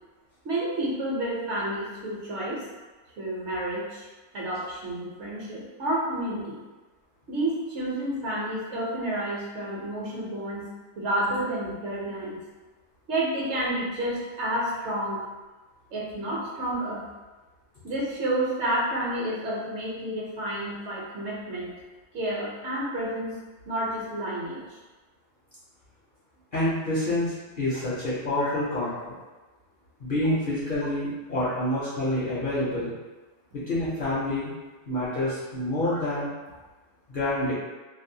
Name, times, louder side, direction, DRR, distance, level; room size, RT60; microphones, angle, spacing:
voice 1, 0.4-2.6 3.2-4.1 4.3-6.6 7.3-10.7 11.0-12.4 13.1-15.2 15.9-17.0 17.8-21.8 22.1-23.3 23.6-24.6 28.4-28.5 30.2-30.3 31.4-31.5 35.8-36.0, right 1 dB, 65° right, -5 dB, 0.9 m, -30 dB
voice 2, 26.5-29.1 30.0-32.9 33.5-34.5 34.9-36.3 37.1-37.5, left 1 dB, 55° left, -9 dB, 0.6 m, -27 dB
2.6 x 2.1 x 2.6 m, 1.2 s
omnidirectional pair, 1.4 m